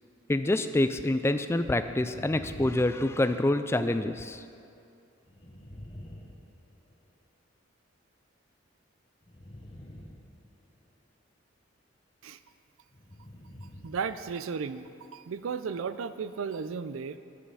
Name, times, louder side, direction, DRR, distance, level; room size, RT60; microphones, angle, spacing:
voice 1, 0.3-4.4, left 1 dB, 15° left, 10 dB, 0.3 m, -26 dB
sound 1, 1.9-3.8 5.2-7.1 9.2-10.9 12.9-14.2 14.5-14.6, left 1 dB, 30° left, 1.1 m, -47 dB
voice 2, 13.8-17.2, right 5 dB, 90° right, 13 dB, 0.4 m, -34 dB
11.0 x 8.6 x 5.5 m, 2.5 s
head